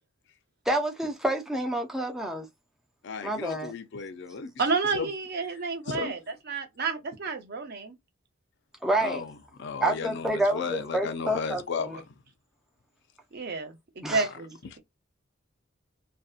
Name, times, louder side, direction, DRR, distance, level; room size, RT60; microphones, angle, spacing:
voice 1, 0.7-2.5 3.2-3.7 8.8-9.2 9.8-12.0 14.0-14.2, right 1 dB, ahead, 0.4 m, -28 dB
voice 2, 3.0-4.5 4.9-5.1 5.9-6.2 9.0-12.0 14.1-14.3, left 5 dB, 60° left, 0.4 m, -34 dB
voice 3, 4.6-6.2 6.5-7.9 13.3-14.8, right 4 dB, 50° right, 0.6 m, -30 dB
2.6 x 2.2 x 2.4 m
head